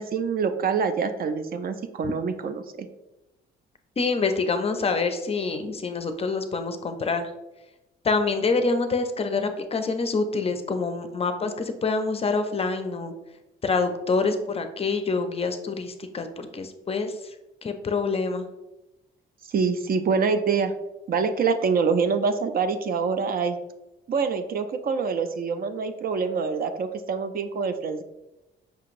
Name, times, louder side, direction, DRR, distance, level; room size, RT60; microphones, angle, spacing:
voice 1, 0.0-2.9 19.5-20.7 21.1-23.6 24.1-28.0, right 5 dB, 50° right, 9 dB, 0.4 m, -25 dB
voice 2, 4.0-7.3 8.0-13.1 13.6-17.2 17.6-18.5, left 4 dB, 30° left, 7 dB, 0.5 m, -26 dB
5.7 x 2.9 x 2.5 m, 0.97 s
cardioid pair, 90°, 20 cm